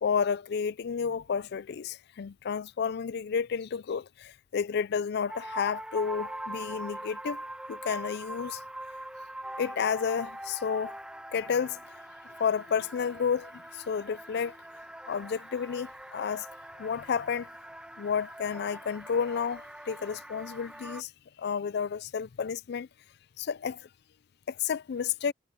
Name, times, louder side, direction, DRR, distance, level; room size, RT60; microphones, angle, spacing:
voice 1, 0.0-7.4 7.7-8.6 9.6-11.0 11.3-11.8 12.4-14.6 15.1-16.5 16.8-17.5 18.0-21.1 21.4-22.9 23.4-23.9 24.5-25.3, left 6 dB, 60° left, 0.4 m, -31 dB
sound 1, 5.3-21.0, right 1 dB, 5° right, 1.4 m, -43 dB
head